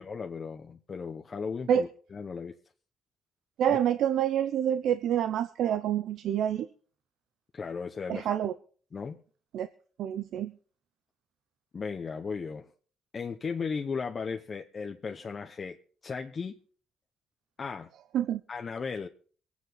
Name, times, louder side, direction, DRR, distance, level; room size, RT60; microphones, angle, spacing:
voice 1, 0.0-2.6 7.5-8.3 8.9-9.2 11.7-12.7 13.1-15.8 16.0-16.6 17.6-17.9 18.5-19.1, left 5 dB, 40° left, 1.0 m, -36 dB
voice 2, 3.6-6.7 8.1-8.5 9.5-9.7 10.0-10.5 18.1-18.4, right 10 dB, 75° right, 0.7 m, -27 dB
23.5 x 9.5 x 4.0 m
cardioid pair, 90°, 0 cm